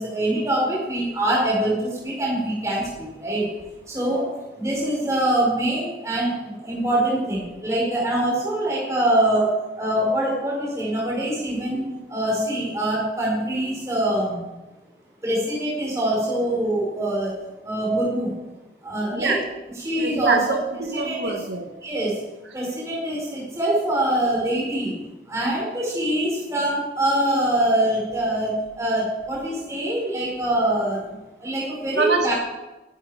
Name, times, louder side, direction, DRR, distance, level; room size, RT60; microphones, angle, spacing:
voice 1, 0.0-3.5 3.9-4.3 4.6-14.4 15.2-17.3 17.6-18.3 18.8-19.4 19.8-20.4 20.9-21.3 21.8-22.2 22.5-24.9 25.3-31.0 31.4-32.3, right 1 dB, 15° right, -4 dB, 5.0 m, -24 dB
voice 2, 19.9-21.7 31.9-32.3, right 3 dB, 90° right, 2 dB, 1.8 m, -24 dB
23.5 x 11.5 x 5.0 m, 1.1 s
head